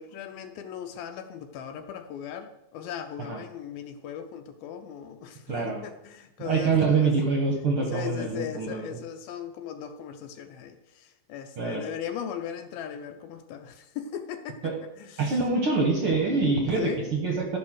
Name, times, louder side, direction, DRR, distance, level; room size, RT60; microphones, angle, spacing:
voice 1, 0.0-6.7 7.0-7.1 7.9-14.7 15.0-15.3 16.8-17.0, left 8 dB, 75° left, 7 dB, 2.4 m, -38 dB
voice 2, 5.5-5.8 6.4-8.9 11.6-11.8 14.6-14.8 15.2-17.6, right 4 dB, 55° right, 0 dB, 1.5 m, -25 dB
13.0 x 6.0 x 6.3 m, 0.86 s
omnidirectional pair, 4.5 m